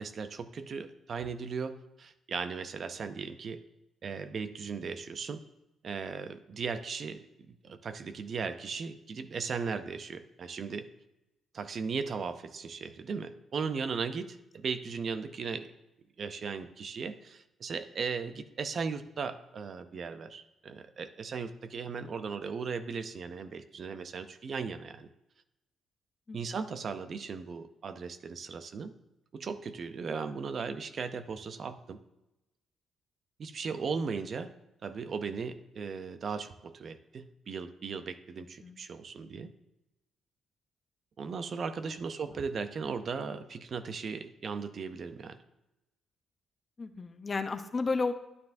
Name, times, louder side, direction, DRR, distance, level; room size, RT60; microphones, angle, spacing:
voice 1, 0.0-3.6 4.0-5.4 5.8-10.9 11.5-15.7 16.2-25.1 26.3-28.9 29.3-32.0 33.4-34.5 34.8-39.5 41.2-45.4, right 5 dB, 50° right, 10 dB, 0.5 m, -37 dB
voice 2, 46.8-48.1, left 4 dB, 35° left, 9 dB, 0.6 m, -32 dB
9.6 x 9.3 x 2.6 m, 0.94 s
cardioid pair, 90°, 0 cm